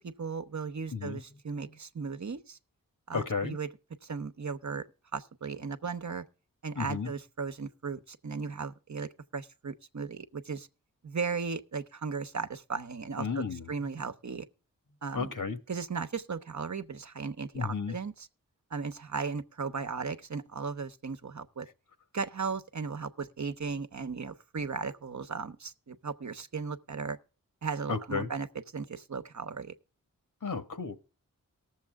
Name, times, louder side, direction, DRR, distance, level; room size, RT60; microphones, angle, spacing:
voice 1, 0.0-2.6 3.1-3.7 4.0-4.8 5.1-6.2 6.6-10.7 11.0-14.5 15.0-15.3 15.7-18.3 18.7-21.7 22.1-27.2 27.6-28.5 28.7-29.7, right 5 dB, 55° right, 1.0 m, -36 dB
voice 2, 3.1-3.6 6.7-7.1 13.2-13.6 15.1-15.6 17.5-17.9 27.9-28.3 30.4-31.0, left 5 dB, 65° left, 1.6 m, -33 dB
19.0 x 7.3 x 3.5 m
cardioid pair, 45°, 34 cm